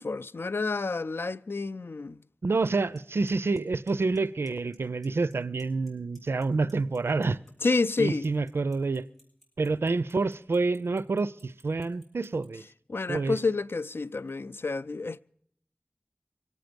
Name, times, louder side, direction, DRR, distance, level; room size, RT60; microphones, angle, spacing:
voice 1, 0.0-2.2 7.6-8.3 12.9-15.2, left 3 dB, 75° left, 0.5 m, -29 dB
voice 2, 2.4-7.4 8.0-9.1 9.6-12.6 13.1-13.4, right 3 dB, 90° right, 0.5 m, -28 dB
Clock, 2.7-2.8 3.0-3.3 3.6-4.2 4.5-4.8 5.0-5.9 6.2-12.5, equal, 5° left, 6.8 m, -58 dB
24.0 x 9.2 x 5.2 m
wide cardioid pair, 50°, 4 cm